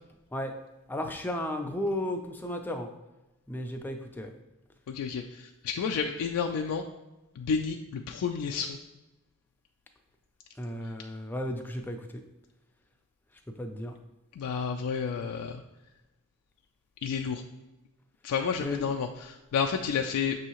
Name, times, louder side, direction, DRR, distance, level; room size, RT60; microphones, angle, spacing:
voice 1, 0.9-2.9 3.5-4.3 10.6-12.2 13.6-14.0 18.6-18.9, left 1 dB, 10° left, 4 dB, 0.3 m, -34 dB
voice 2, 4.9-6.8 7.4-8.8 14.4-15.6 17.0-17.4 18.2-20.4, left 6 dB, 90° left, 4 dB, 0.3 m, -30 dB
6.2 x 2.7 x 2.9 m, 1.0 s
head